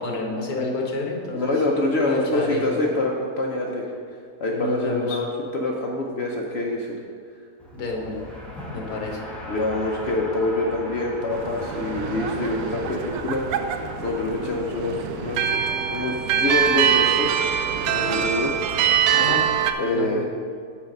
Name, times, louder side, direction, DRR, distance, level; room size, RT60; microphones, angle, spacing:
voice 1, 0.0-1.5 2.0-2.7 4.5-5.2 7.7-8.2 8.7-9.2 19.1-19.5 19.9-20.2, left 3 dB, 75° left, 0 dB, 1.7 m, -29 dB
voice 2, 1.3-3.9 4.4-7.0 9.5-13.7 14.0-15.6 15.9-17.4 17.9-18.5 19.8-20.2, left 2 dB, 55° left, -1 dB, 0.8 m, -26 dB
Race car auto racing, 7.6-18.9, left 1 dB, ahead, 1.0 m, -39 dB
sound 1, 11.3-19.7, right 8 dB, 80° right, 1.1 m, -24 dB
7.2 x 5.3 x 6.4 m, 2.2 s
omnidirectional pair, 1.6 m